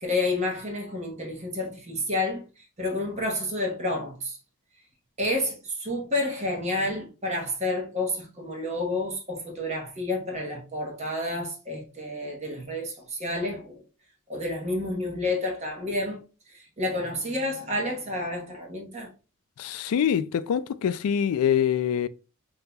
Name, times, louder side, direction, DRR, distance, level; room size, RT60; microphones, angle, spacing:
voice 1, 0.0-4.4 5.2-13.8 14.3-16.2 16.5-19.1, left 1 dB, 30° right, 1.0 m, -30 dB
voice 2, 19.6-22.1, left 8 dB, 80° left, 0.3 m, -25 dB
5.3 x 2.8 x 2.2 m
head